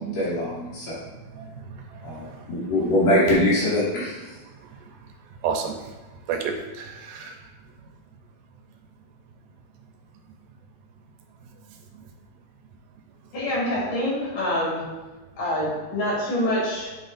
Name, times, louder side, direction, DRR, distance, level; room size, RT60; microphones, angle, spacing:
voice 1, 0.0-1.0 2.0-4.3, left 1 dB, 85° left, -9 dB, 4.4 m, -23 dB
voice 2, 1.2-2.1 5.4-5.8 6.3-7.4, right 6 dB, 80° right, 4 dB, 2.0 m, -31 dB
voice 3, 13.3-14.8 15.4-17.0, left 1 dB, 60° left, -6 dB, 3.8 m, -26 dB
9.0 x 5.8 x 2.5 m, 1.2 s
omnidirectional pair, 4.3 m